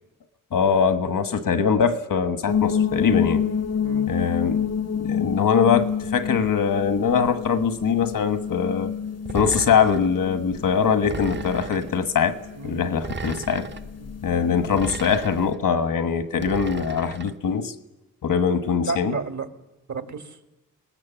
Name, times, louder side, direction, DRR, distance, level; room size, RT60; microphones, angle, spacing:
voice 1, 0.5-3.4 4.1-4.7 5.0-8.9 9.3-12.4 12.6-13.7 14.2-17.7 18.2-19.1, left 6 dB, 90° left, 1.3 m, -22 dB
sound 1, 2.5-15.5, left 7 dB, 50° left, 0.7 m, -29 dB
sound 2, 9.3-10.1 11.0-11.9 12.9-13.8 14.7-15.6 16.4-17.3, right 4 dB, 35° right, 0.7 m, -35 dB
voice 2, 13.8-14.2 18.8-19.5 19.9-20.4, right 4 dB, 60° right, 1.9 m, -32 dB
25.5 x 19.0 x 7.2 m
wide cardioid pair, 90°, 32 cm